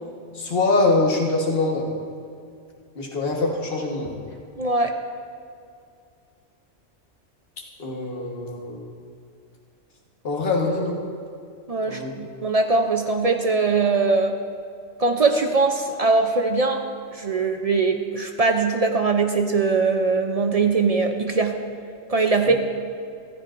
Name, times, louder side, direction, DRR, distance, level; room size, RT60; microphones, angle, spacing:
voice 1, 0.3-1.9 2.9-4.1 7.8-8.9 10.2-11.0 11.8-12.1, left 2 dB, 50° left, -1 dB, 1.5 m, -23 dB
voice 2, 4.6-4.9 11.7-14.4 15.0-16.8 17.1-21.6 22.1-22.5, right 4 dB, 45° right, 5 dB, 0.5 m, -21 dB
14.5 x 14.5 x 2.5 m, 2.4 s
omnidirectional pair, 1.2 m